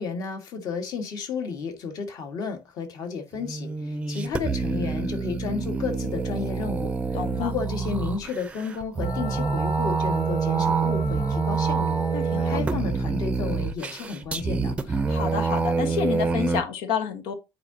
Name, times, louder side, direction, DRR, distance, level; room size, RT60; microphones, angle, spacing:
voice 1, 0.0-6.9 7.3-14.8, left 5 dB, 45° left, 1.5 m, -32 dB
sound 1, 3.3-16.6, right 4 dB, 15° right, 0.6 m, -26 dB
voice 2, 7.1-7.5 12.1-12.6 15.1-17.3, left 7 dB, 80° left, 1.2 m, -29 dB
Wind instrument woodwind instrument, 9.0-12.7, left 4 dB, 30° left, 0.9 m, -39 dB
9.3 x 4.7 x 2.7 m
cardioid pair, 175°, 9 cm